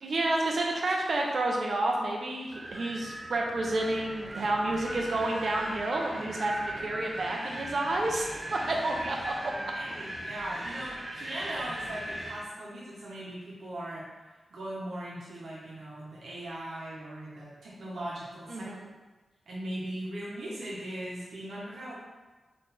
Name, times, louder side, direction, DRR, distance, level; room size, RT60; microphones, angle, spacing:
voice 1, 0.0-9.3 18.5-18.9, right 2 dB, 60° right, 0 dB, 0.7 m, -30 dB
Wind, 2.5-12.4, right 1 dB, 25° right, 0.5 m, -39 dB
voice 2, 9.5-14.0 14.5-18.7 19.5-21.9, right 1 dB, 85° right, -7 dB, 1.1 m, -39 dB
3.8 x 3.2 x 4.2 m, 1.2 s
wide cardioid pair, 155°, 0 cm